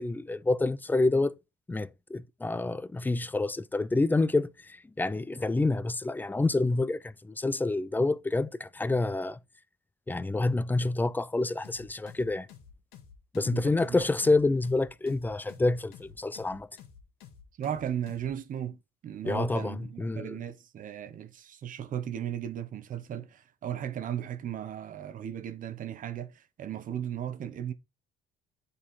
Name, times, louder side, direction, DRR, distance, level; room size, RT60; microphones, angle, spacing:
voice 1, 0.0-1.4 1.7-9.4 10.1-12.5 13.3-16.7 19.2-20.4, left 2 dB, 10° left, 0.4 m, -28 dB
sound 1, 11.6-18.3, left 7 dB, 85° left, 2.0 m, -51 dB
voice 2, 13.4-14.0 17.6-27.7, right 10 dB, 55° right, 1.1 m, -36 dB
9.8 x 4.3 x 4.4 m
cardioid pair, 110°, 17 cm